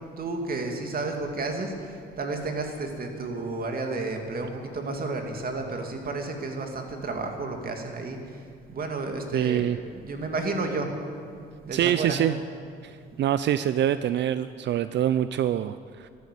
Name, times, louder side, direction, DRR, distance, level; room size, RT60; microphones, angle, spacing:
voice 1, 0.2-9.7 9.9-12.2 12.8-13.2, right 3 dB, 50° right, 3 dB, 2.5 m, -32 dB
voice 2, 9.3-9.8 11.7-12.3 12.8-16.1, right 11 dB, 65° right, 13 dB, 0.5 m, -25 dB
13.0 x 12.5 x 8.4 m, 2.3 s
cardioid pair, 90°, 20 cm